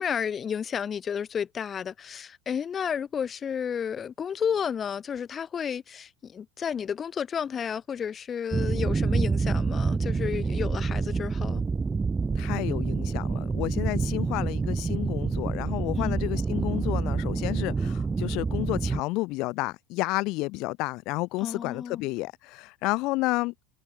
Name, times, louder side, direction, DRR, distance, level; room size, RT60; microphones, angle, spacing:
voice 1, 0.0-11.6 15.9-16.2 21.4-22.1, left 7 dB, 30° left, 2.5 m, -32 dB
sound 1, 8.5-19.0, right 4 dB, 20° right, 0.9 m, -27 dB
voice 2, 12.4-23.5, left 22 dB, 55° left, 2.4 m, -31 dB
hypercardioid pair, 80°, 0 cm